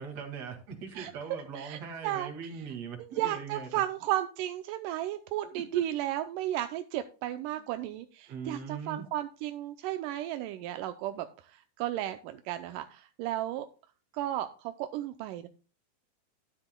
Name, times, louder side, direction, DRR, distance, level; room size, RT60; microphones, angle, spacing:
voice 1, 0.0-3.8 5.5-5.6 8.3-9.1, right 6 dB, 50° right, 3 dB, 3.0 m, -40 dB
voice 2, 1.6-2.3 3.0-13.7 14.1-15.5, right 13 dB, 80° right, 8 dB, 2.0 m, -34 dB
12.5 x 9.9 x 2.2 m, 0.35 s
omnidirectional pair, 4.2 m